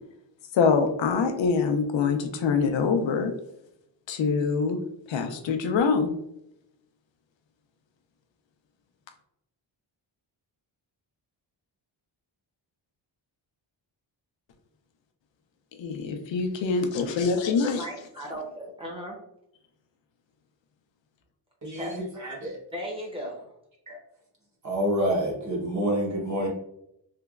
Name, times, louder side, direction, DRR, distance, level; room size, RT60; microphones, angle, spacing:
voice 1, 0.5-3.3 4.1-4.8 5.1-6.1 15.8-17.8, left 5 dB, 70° left, 6 dB, 0.5 m, -24 dB
voice 2, 17.6-19.2 21.7-22.0 22.7-23.5, equal, 10° right, -2 dB, 0.8 m, -36 dB
voice 3, 21.6-22.6 23.9-24.0 24.6-26.5, equal, 40° right, -3 dB, 1.0 m, -28 dB
3.4 x 2.9 x 2.4 m, 0.78 s
wide cardioid pair, 165°, 46 cm